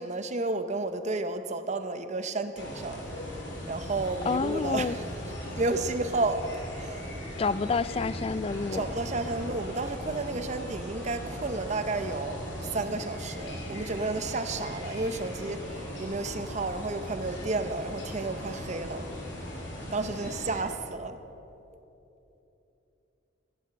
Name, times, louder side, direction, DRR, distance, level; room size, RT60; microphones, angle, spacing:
voice 1, 0.0-3.0 3.7-5.0 5.6-7.1 8.7-19.1 19.9-21.2, right 3 dB, 35° right, 9 dB, 0.7 m, -32 dB
sound 1, 2.6-20.6, equal, 60° left, 3.1 m, -38 dB
voice 2, 4.2-5.0 7.4-8.8, left 4 dB, 30° left, 16 dB, 0.3 m, -28 dB
14.5 x 10.0 x 6.6 m, 3.0 s
head